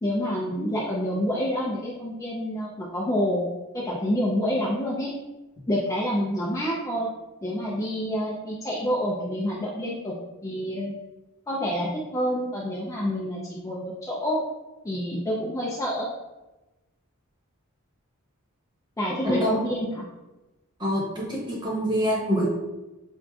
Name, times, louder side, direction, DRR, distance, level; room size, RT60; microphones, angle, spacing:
voice 1, 0.0-3.5 3.7-5.1 5.7-7.1 7.4-10.9 11.5-14.4 14.8-16.1 19.0-20.1, equal, 15° left, -4 dB, 0.4 m, -28 dB
voice 2, 20.8-22.5, equal, 20° right, -5 dB, 0.9 m, -25 dB
4.5 x 2.5 x 2.3 m, 1.1 s
head